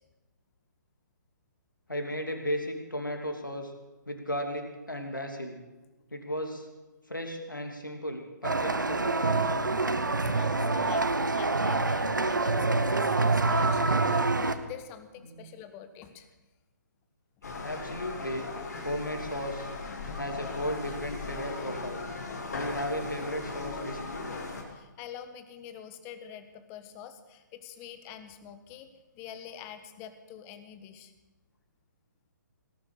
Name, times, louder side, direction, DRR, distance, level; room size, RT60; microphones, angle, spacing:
voice 1, 1.9-3.7 4.1-5.6 6.1-6.7 7.1-9.6 15.2-15.5 17.6-18.5 18.8-19.7 20.2-22.0 22.5-24.3, equal, 85° left, 3 dB, 3.0 m, -35 dB
sound 1, 8.4-14.5, right 3 dB, 75° right, 1.2 m, -26 dB
voice 2, 10.2-16.3 24.7-31.1, left 9 dB, 20° left, 10 dB, 1.3 m, -46 dB
sound 2, 17.4-24.6, left 3 dB, 55° left, 3.0 m, -38 dB
18.5 x 11.0 x 6.6 m, 1.1 s
figure-of-eight pair, 135°, 10 cm